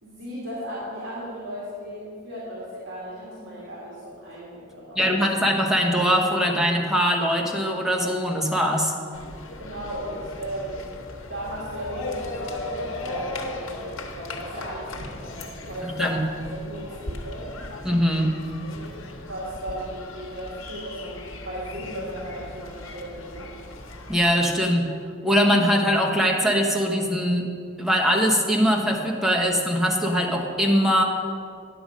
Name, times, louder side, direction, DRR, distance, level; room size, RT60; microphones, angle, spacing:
voice 1, 0.0-5.2 9.6-10.9 11.3-16.1 16.5-17.5 19.2-23.5, equal, 65° right, -7 dB, 2.1 m, -36 dB
voice 2, 4.9-8.9 16.0-16.3 17.8-18.3 24.1-24.9 25.2-27.5 27.8-31.0, equal, ahead, 0 dB, 1.0 m, -21 dB
sound 1, 9.1-24.4, left 2 dB, 85° left, 1.1 m, -37 dB
9.9 x 6.9 x 5.2 m, 2.2 s
head